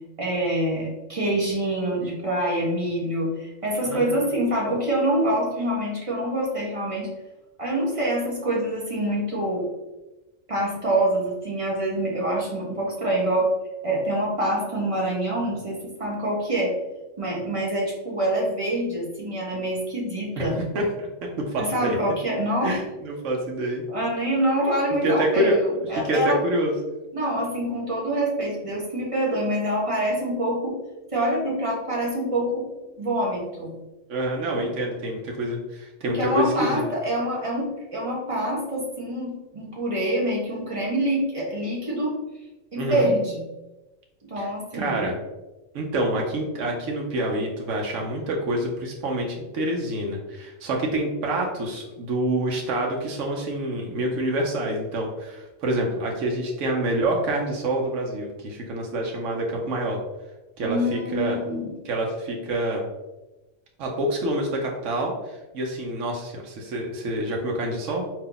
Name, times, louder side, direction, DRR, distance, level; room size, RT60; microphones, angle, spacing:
voice 1, 0.2-7.1 7.6-9.7 10.5-13.5 13.8-16.7 17.2-20.6 21.6-22.8 23.9-25.6 25.9-26.4 27.1-30.7 31.1-32.6 33.0-33.7 34.5-34.7 36.1-42.1 42.7-43.4 44.2-45.1 60.6-61.8, right 1 dB, 25° right, -4 dB, 1.3 m, -26 dB
voice 2, 3.9-4.3 20.3-20.5 20.7-22.0 22.6-23.9 24.9-25.6 25.8-26.8 34.1-36.8 42.7-43.1 44.4-45.2 45.7-60.0 60.6-61.4 61.8-62.9 63.8-68.0, right 1 dB, 75° right, -1 dB, 1.1 m, -27 dB
4.3 x 2.9 x 3.9 m, 1.0 s
omnidirectional pair, 1.3 m